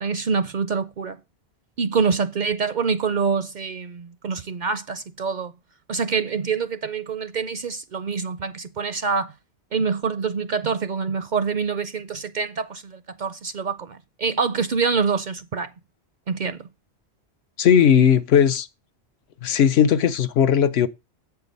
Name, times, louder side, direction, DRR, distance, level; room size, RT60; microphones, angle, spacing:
voice 1, 0.0-1.2 1.8-5.5 5.9-9.3 9.7-15.7 16.3-16.7, right 5 dB, 55° right, 0.6 m, -26 dB
voice 2, 17.6-18.7 19.4-20.9, left 8 dB, 70° left, 0.9 m, -17 dB
8.0 x 4.7 x 5.3 m
omnidirectional pair, 1.1 m